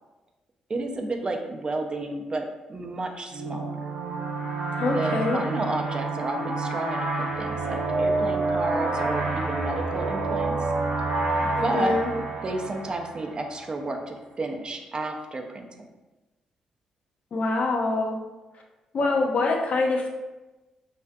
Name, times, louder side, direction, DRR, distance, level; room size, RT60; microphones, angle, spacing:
voice 1, 0.7-3.8 4.9-10.7 11.4-15.7, right 2 dB, 35° right, 3 dB, 0.4 m, -31 dB
sound 1, 3.3-13.7, right 3 dB, 85° right, 0.5 m, -28 dB
voice 2, 4.8-5.4 11.5-12.1 17.3-18.2 18.9-20.1, left 3 dB, 55° left, 1 dB, 0.5 m, -25 dB
2.5 x 2.4 x 2.2 m, 1.1 s
hypercardioid pair, 45°, 3 cm